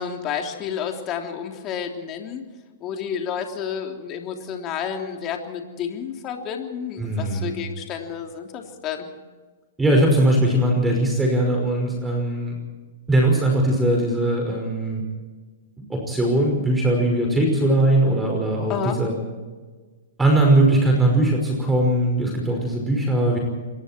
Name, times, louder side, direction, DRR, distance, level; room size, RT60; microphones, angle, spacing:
voice 1, 0.0-2.4 2.8-9.1 18.7-19.0, left 8 dB, 35° left, 3 dB, 3.3 m, -30 dB
voice 2, 7.0-7.6 9.8-12.6 13.1-15.0 15.9-19.1 20.2-23.4, right 1 dB, 10° right, 1 dB, 5.5 m, -20 dB
27.0 x 22.0 x 4.6 m, 1.4 s
hypercardioid pair, 115°, 0 cm